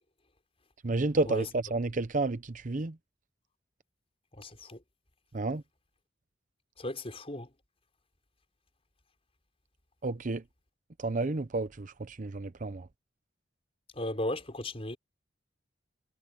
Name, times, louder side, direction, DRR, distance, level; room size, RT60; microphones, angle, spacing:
voice 1, 0.8-3.0 5.3-5.6 10.0-10.4 11.0-12.9, right 2 dB, 45° right, 0.7 m, -31 dB
voice 2, 4.4-4.8 6.8-7.5 14.0-15.0, left 1 dB, 30° left, 5.3 m, -35 dB
head